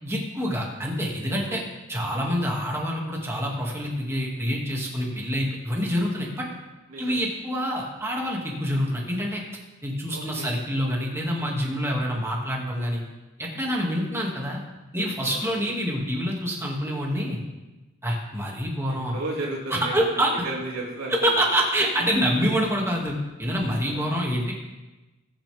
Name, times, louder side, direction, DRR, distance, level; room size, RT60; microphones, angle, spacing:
voice 1, 0.0-1.6 1.9-6.5 7.0-9.4 9.8-13.0 13.4-14.6 14.9-17.4 18.0-19.2 19.7-20.3 21.1-24.5, equal, 10° right, -2 dB, 2.3 m, -26 dB
voice 2, 10.1-10.5 15.2-15.6 18.9-21.5 23.9-24.1, right 2 dB, 90° right, -3 dB, 2.9 m, -35 dB
21.0 x 7.2 x 3.6 m, 1.1 s
head